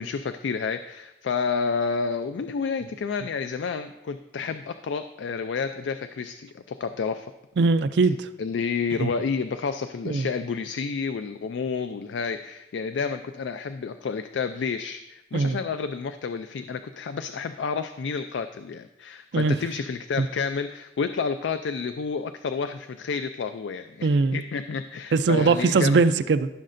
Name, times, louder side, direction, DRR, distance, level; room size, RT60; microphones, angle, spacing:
voice 1, 0.0-7.3 8.4-26.0, left 5 dB, 85° left, 9 dB, 0.4 m, -30 dB
voice 2, 7.6-8.3 9.0-9.1 10.0-10.3 15.3-15.6 19.3-19.6 20.2-20.3 24.0-24.4 25.1-26.5, right 4 dB, 75° right, 12 dB, 0.4 m, -21 dB
14.5 x 6.4 x 2.6 m, 0.93 s
head